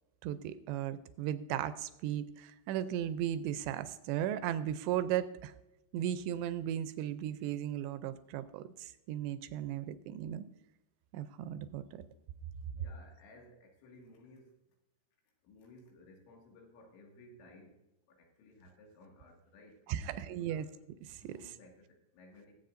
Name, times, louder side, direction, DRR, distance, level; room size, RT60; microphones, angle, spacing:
voice 1, 0.2-5.5 5.9-10.5 11.1-12.0 19.9-20.7 21.1-21.4, right 11 dB, 85° right, 12 dB, 2.7 m, -36 dB
voice 2, 12.7-14.6 15.4-17.8 18.1-20.7 21.2-22.5, left 2 dB, 90° left, 0 dB, 4.4 m, -57 dB
21.5 x 8.0 x 2.6 m, 0.93 s
omnidirectional pair, 5.2 m